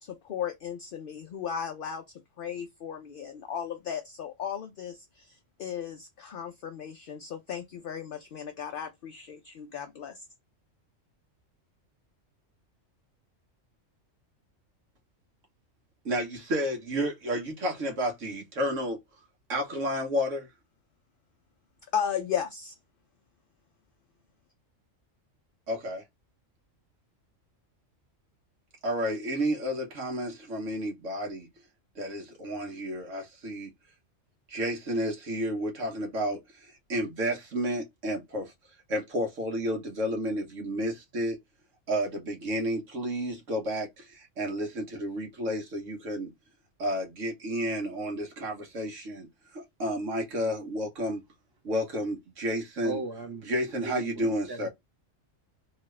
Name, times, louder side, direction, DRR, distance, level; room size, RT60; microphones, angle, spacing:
voice 1, 0.0-10.2 21.9-22.7, left 8 dB, 60° left, 0.6 m, -35 dB
voice 2, 16.0-19.0 19.5-20.5 25.7-26.0 28.8-31.5 32.0-33.7 34.5-36.4 36.9-38.5 38.9-41.4 41.9-44.0 44.4-46.3 46.8-49.3 49.5-51.2 51.6-53.0 53.5-54.7, equal, 70° right, 1.5 m, -31 dB
voice 3, 52.8-54.7, right 3 dB, 20° right, 0.9 m, -38 dB
3.2 x 2.4 x 3.2 m
omnidirectional pair, 1.4 m